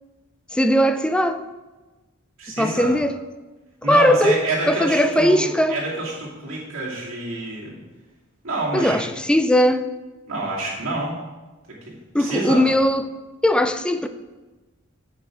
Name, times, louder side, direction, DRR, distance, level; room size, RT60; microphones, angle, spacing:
voice 1, 0.5-1.4 2.6-3.1 3.9-4.4 4.7-5.8 8.7-9.8 12.1-13.1 13.4-14.1, equal, 5° left, 0.3 m, -18 dB
voice 2, 2.4-3.0 3.8-7.8 8.4-9.0 10.3-11.2 11.7-12.7, right 2 dB, 70° right, 2.6 m, -28 dB
8.4 x 5.4 x 4.8 m
head